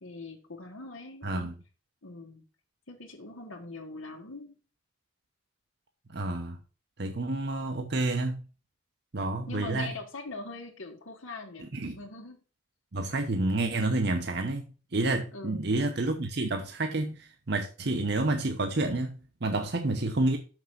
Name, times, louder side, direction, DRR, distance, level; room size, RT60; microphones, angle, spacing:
voice 1, 0.0-1.5 2.0-2.4 2.9-4.5 9.5-12.4 15.3-15.7, left 3 dB, 90° left, 1.6 m, -42 dB
voice 2, 1.2-1.5 6.1-6.6 7.0-8.4 9.1-9.9 11.7-12.0 12.9-20.4, right 2 dB, 55° right, 0.9 m, -29 dB
6.3 x 6.1 x 5.7 m
head